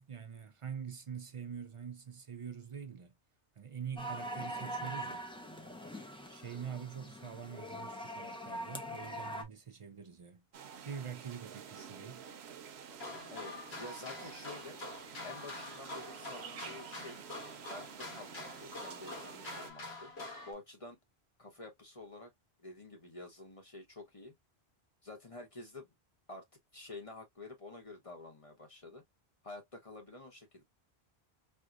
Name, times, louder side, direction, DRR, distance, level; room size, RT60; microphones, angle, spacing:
voice 1, 0.0-3.1 3.6-5.3 6.3-10.4 10.8-12.2, right 7 dB, 40° right, 0.5 m, -45 dB
sound 1, 4.0-9.4, right 1 dB, 5° left, 0.5 m, -42 dB
sound 2, 10.5-19.7, right 7 dB, 90° right, 0.9 m, -50 dB
sound 3, 12.9-20.5, left 2 dB, 75° left, 1.7 m, -46 dB
voice 2, 13.3-14.8 15.2-17.2 17.7-20.1 20.5-21.0 21.4-22.3 22.6-24.3 25.0-25.9 26.3-26.5 26.7-29.0 29.4-30.6, left 2 dB, 35° left, 0.9 m, -49 dB
4.4 x 2.1 x 2.3 m
omnidirectional pair, 1.1 m